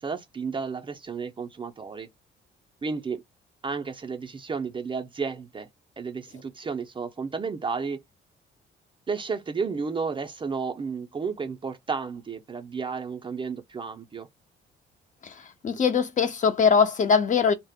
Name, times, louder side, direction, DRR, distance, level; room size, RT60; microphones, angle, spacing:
voice 1, 0.0-2.1 2.8-3.2 3.6-5.7 6.0-8.0 9.1-14.3, right 5 dB, 25° right, 0.4 m, -32 dB
voice 2, 15.6-17.5, left 6 dB, 40° left, 0.5 m, -21 dB
2.0 x 2.0 x 3.4 m
cardioid pair, 90°, 20 cm